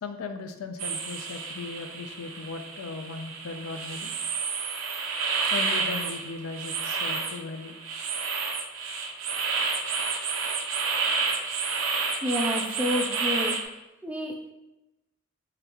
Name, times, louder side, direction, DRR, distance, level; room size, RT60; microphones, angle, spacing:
voice 1, 0.0-4.1 5.5-7.8, left 4 dB, 80° left, 8 dB, 0.4 m, -37 dB
sound 1, 0.8-13.6, right 4 dB, 70° right, 0.4 m, -30 dB
voice 2, 12.2-13.6 14.0-14.5, left 1 dB, 5° right, 1 dB, 0.3 m, -29 dB
3.8 x 3.3 x 2.9 m, 0.96 s
head